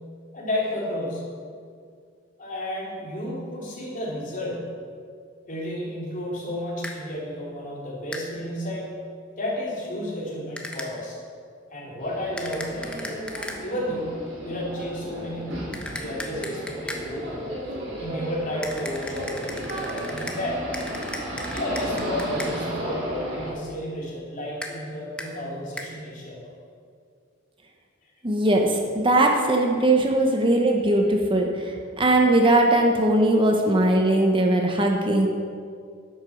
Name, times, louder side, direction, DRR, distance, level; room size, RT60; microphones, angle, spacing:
voice 1, 0.3-1.3 2.4-4.7 5.5-8.9 9.4-11.2 11.7-13.0 13.6-17.4 18.0-19.6 20.1-20.7 21.5-26.4, left 1 dB, 45° left, -4 dB, 3.1 m, -32 dB
sound 1, 6.8-7.0 8.1-8.3 10.6-10.9 12.4-13.6 15.7-17.0 18.6-20.4 20.7-22.5 24.6-24.7 25.2-25.3 25.8-25.9, left 1 dB, 5° left, 1.0 m, -36 dB
sound 2, 12.0-23.5, equal, 70° right, 3.4 m, -34 dB
voice 2, 28.2-35.3, right 1 dB, 25° right, 2 dB, 1.0 m, -20 dB
10.5 x 8.2 x 6.4 m, 2.2 s
head